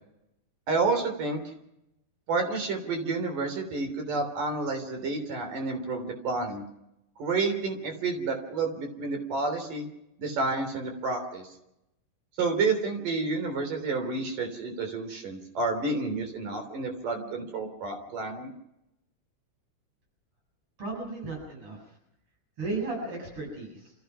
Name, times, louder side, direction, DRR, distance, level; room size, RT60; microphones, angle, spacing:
voice 1, 0.7-1.4 2.3-6.6 7.2-9.9 10.2-11.5 12.4-18.5, right 3 dB, 75° right, 5 dB, 5.0 m, -30 dB
voice 2, 20.8-21.8 22.6-23.9, right 3 dB, 40° right, 0 dB, 8.7 m, -34 dB
29.0 x 15.5 x 6.0 m, 0.86 s
omnidirectional pair, 3.8 m